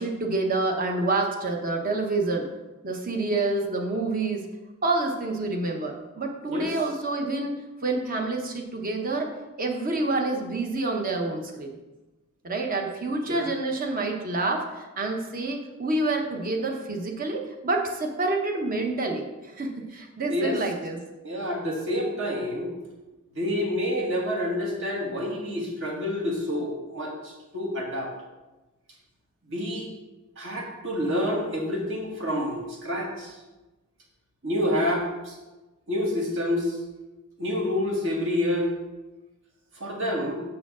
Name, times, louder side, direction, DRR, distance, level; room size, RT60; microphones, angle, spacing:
voice 1, 0.0-2.5 2.8-4.5 4.8-7.5 7.8-9.3 9.6-11.8 12.4-21.0, right 2 dB, 40° right, 2 dB, 1.1 m, -28 dB
voice 2, 20.3-20.6 21.2-22.7 23.3-28.1 29.4-29.9 30.4-33.4 34.4-35.4 35.9-36.8 37.4-38.7 39.7-40.4, left 1 dB, 55° right, -1 dB, 1.9 m, -28 dB
7.5 x 4.9 x 6.2 m, 1.1 s
head